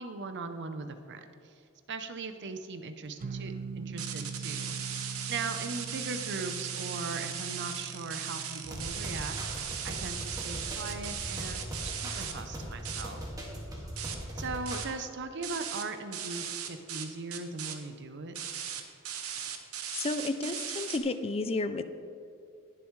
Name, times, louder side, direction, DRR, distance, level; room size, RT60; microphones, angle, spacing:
voice 1, 0.0-1.5 1.9-4.8 5.3-9.4 9.8-13.2 14.3-18.4, right 3 dB, 55° right, 8 dB, 0.7 m, -39 dB
sound 1, 3.2-10.1, right 4 dB, 35° right, 0.3 m, -42 dB
sound 2, 4.0-12.3 12.8-13.0 13.5-13.7 14.0-14.2 14.6-14.9 15.4-15.8 16.1-17.0 17.3-17.7 18.3-21.0, right 8 dB, 75° right, 1.0 m, -38 dB
sound 3, 8.6-14.9, equal, 15° right, 2.0 m, -40 dB
voice 2, 19.9-21.8, left 3 dB, 25° left, 10 dB, 0.4 m, -31 dB
20.5 x 7.0 x 3.2 m, 2.5 s
head